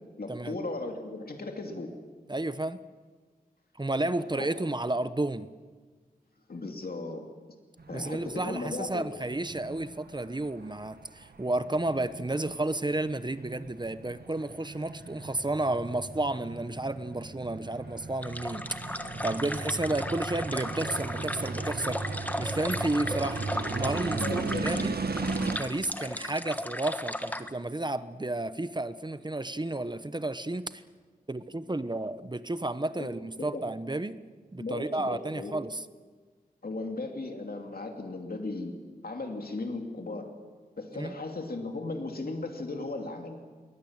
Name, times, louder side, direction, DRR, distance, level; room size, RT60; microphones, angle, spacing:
voice 1, 0.2-1.9 4.4-4.5 6.5-7.3 7.9-9.1 24.2-25.0 33.0-33.1 33.4-33.6 34.6-35.5 36.6-38.8 39.0-40.3 40.8-43.4, left 2 dB, 75° left, 3 dB, 2.8 m, -36 dB
voice 2, 2.3-2.8 3.8-5.5 7.9-22.0 22.4-23.4 23.7-25.0 25.6-30.8 31.3-34.2 34.5-35.8 40.9-41.1, right 2 dB, 30° right, 13 dB, 1.0 m, -32 dB
sound 1, 7.8-25.6, right 3 dB, 90° right, 1.6 m, -37 dB
sound 2, 18.2-27.5, left 1 dB, 10° left, 1.3 m, -36 dB
22.5 x 20.5 x 8.9 m, 1.5 s
wide cardioid pair, 70°, 16 cm